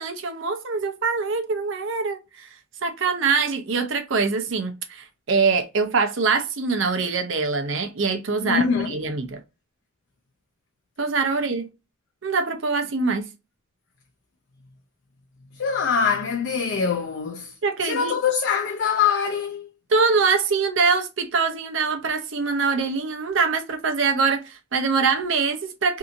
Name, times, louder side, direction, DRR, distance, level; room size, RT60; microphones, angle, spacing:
voice 1, 0.0-2.5 2.8-9.4 11.0-11.7 12.2-13.3 17.6-18.1 19.9-26.0, right 4 dB, 60° right, 0.6 m, -24 dB
voice 2, 8.4-9.0 15.6-17.5 17.8-19.7, left 6 dB, 55° left, 0.4 m, -23 dB
2.7 x 2.6 x 2.4 m
head